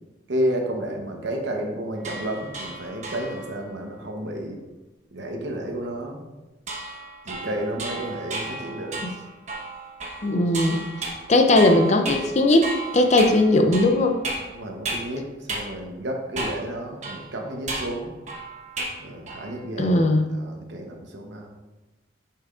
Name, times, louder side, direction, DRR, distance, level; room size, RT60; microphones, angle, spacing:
voice 1, 0.3-4.6 5.1-6.2 7.2-9.0 14.5-18.1 19.0-21.5, right 1 dB, 60° right, 2 dB, 1.0 m, -31 dB
sound 1, 2.0-3.6 6.7-15.2 15.5-15.7 16.3-16.7 17.0-19.0 19.3-19.6, right 2 dB, 35° right, 1.0 m, -34 dB
voice 2, 10.2-10.8 11.3-14.2 19.8-20.3, left 2 dB, 35° left, 5 dB, 0.5 m, -19 dB
7.1 x 5.6 x 2.5 m, 1.1 s
head